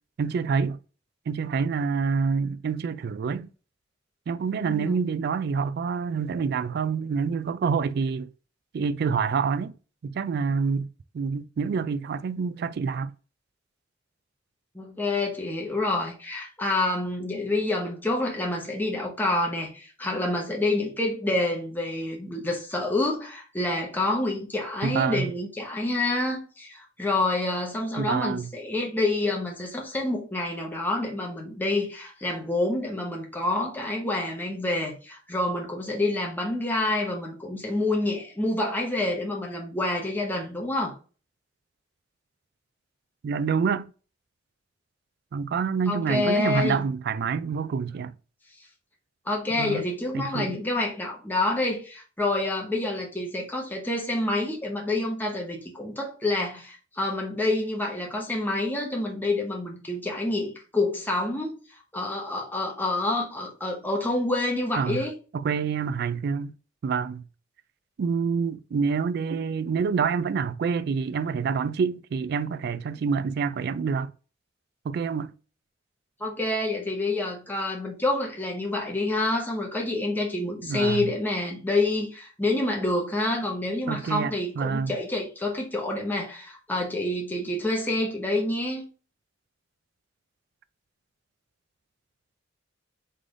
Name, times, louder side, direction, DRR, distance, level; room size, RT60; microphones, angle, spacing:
voice 1, 0.2-0.8 1.3-3.5 4.3-8.3 8.7-9.7 10.0-10.9 11.1-13.1 24.8-25.3 28.0-28.5 43.2-43.9 45.3-48.1 49.5-49.8 50.1-50.6 64.8-65.0 65.3-66.5 66.8-67.2 68.0-74.1 74.8-75.3 80.6-81.1 83.9-84.9, right 5 dB, 55° right, 0.3 m, -27 dB
voice 2, 4.6-5.0 14.7-40.9 45.9-46.8 49.3-61.6 61.9-65.1 76.2-88.8, left 2 dB, 10° left, 0.8 m, -28 dB
3.8 x 3.3 x 3.7 m
head